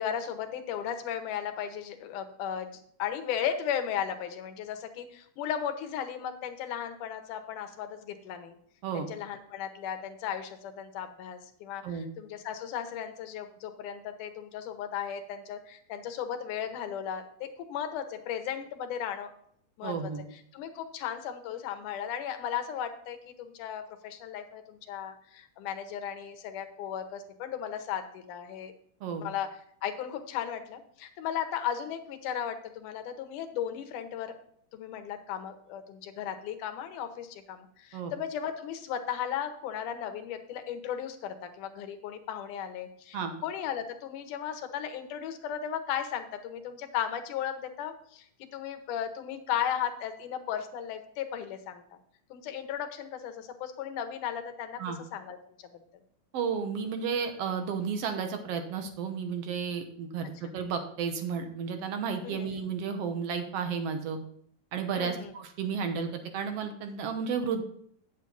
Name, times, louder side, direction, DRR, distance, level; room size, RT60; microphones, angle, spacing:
voice 1, 0.0-8.6 8.9-19.3 19.8-19.9 20.3-28.7 29.2-29.5 29.8-34.4 34.7-51.8 52.3-55.5 62.2-62.6 64.9-65.3, left 9 dB, 80° left, 7 dB, 2.4 m, -36 dB
voice 2, 19.8-20.2 29.0-29.2 37.9-38.1 43.1-43.3 54.8-55.0 56.3-64.2 64.7-67.6, right 6 dB, 65° right, 6 dB, 1.7 m, -32 dB
9.0 x 7.7 x 3.9 m, 0.66 s
omnidirectional pair, 3.6 m